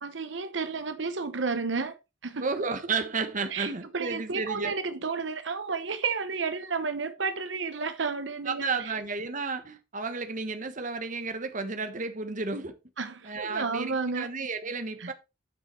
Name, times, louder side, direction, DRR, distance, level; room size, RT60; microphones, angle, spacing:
voice 1, 0.0-2.4 3.5-8.9 13.0-14.3 15.0-15.1, right 4 dB, 85° right, 1.0 m, -32 dB
voice 2, 2.4-4.7 8.5-12.7 13.2-15.1, right 4 dB, 45° right, 1.3 m, -32 dB
9.4 x 5.4 x 4.5 m
head